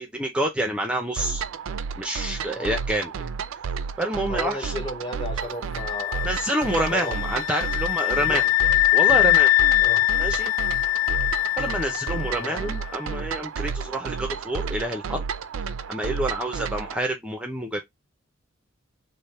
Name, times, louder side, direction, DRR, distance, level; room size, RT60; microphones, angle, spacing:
voice 1, 0.0-1.4 2.0-3.1 4.0-4.7 6.2-8.4 8.9-9.5 10.2-10.5 11.6-15.2 15.9-17.8, right 1 dB, 5° right, 0.5 m, -28 dB
sound 1, 1.2-17.0, right 6 dB, 85° right, 0.4 m, -32 dB
voice 2, 4.3-6.3 6.8-7.2 8.3-8.4 9.8-10.1 12.3-12.6, left 1 dB, 25° left, 0.8 m, -34 dB
sound 2, 5.8-12.6, left 16 dB, 90° left, 0.3 m, -22 dB
3.4 x 2.1 x 4.0 m
head